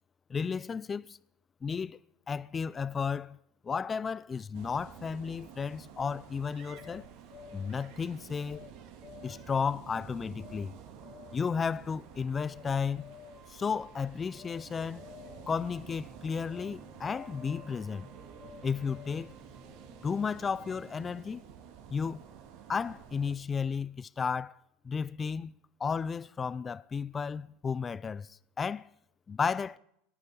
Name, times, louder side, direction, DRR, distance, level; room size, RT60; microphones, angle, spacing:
voice 1, 0.3-1.2 1.6-2.0 2.3-3.4 3.6-7.1 7.5-8.6 9.2-10.7 11.3-13.1 13.5-15.1 15.5-18.1 18.6-19.3 20.0-21.4 21.9-22.2 22.7-24.6 24.8-25.5 25.8-28.9 29.3-29.8, left 6 dB, 25° left, 0.5 m, -33 dB
sound 1, 4.2-21.2, right 2 dB, 15° right, 1.5 m, -59 dB
sound 2, 4.5-23.3, right 8 dB, 65° right, 2.7 m, -51 dB
sound 3, 6.7-7.8 8.4-8.7 9.0-9.6 10.4-10.7 11.0-11.5 12.3-12.7 12.9-13.6 14.3-14.7 14.9-15.6 16.5-16.8 17.0-17.8 18.4-19.4, left 9 dB, 40° left, 1.8 m, -52 dB
18.0 x 13.0 x 5.4 m
supercardioid pair, 110°, 0 cm